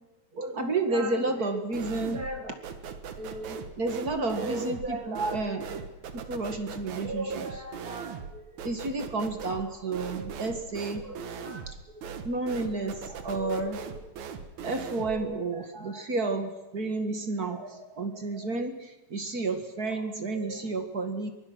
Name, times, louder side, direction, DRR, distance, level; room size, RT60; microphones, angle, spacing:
voice 1, 0.3-2.5 3.2-14.1 14.6-21.3, right 3 dB, 35° right, 7 dB, 1.6 m, -32 dB
sound 1, 1.7-2.4 2.6-15.2, right 6 dB, 60° right, 2.6 m, -40 dB
23.5 x 22.5 x 6.2 m, 1.1 s
omnidirectional pair, 3.9 m